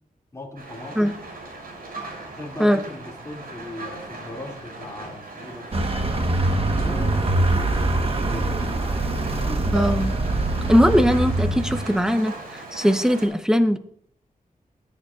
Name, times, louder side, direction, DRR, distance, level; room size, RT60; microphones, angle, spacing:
voice 1, 0.3-1.2 2.3-5.7 6.7-9.8, left 2 dB, 20° left, -2 dB, 2.4 m, -39 dB
Rain, 0.6-13.3, right 2 dB, 90° right, 5.9 m, -38 dB
Vehicle, 5.7-12.1, right 2 dB, 40° right, 1.2 m, -23 dB
voice 2, 9.7-10.2 10.7-13.8, equal, 5° right, 9 dB, 0.9 m, -20 dB
20.5 x 9.5 x 2.4 m, 0.67 s
wide cardioid pair, 100°, 15 cm